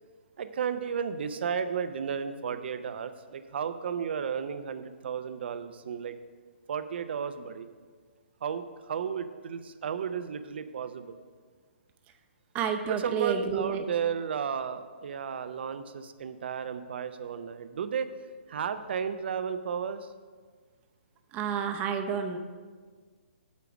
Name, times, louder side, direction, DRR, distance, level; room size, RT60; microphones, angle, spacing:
voice 1, 0.4-6.2 6.7-7.7 8.4-11.2 12.8-18.1 18.5-20.0, right 7 dB, 60° right, 11 dB, 0.6 m, -33 dB
voice 2, 12.5-13.9 21.3-22.4, right 7 dB, 25° right, 5 dB, 0.7 m, -30 dB
8.5 x 4.6 x 6.2 m, 1.5 s
hypercardioid pair, 145°, 6 cm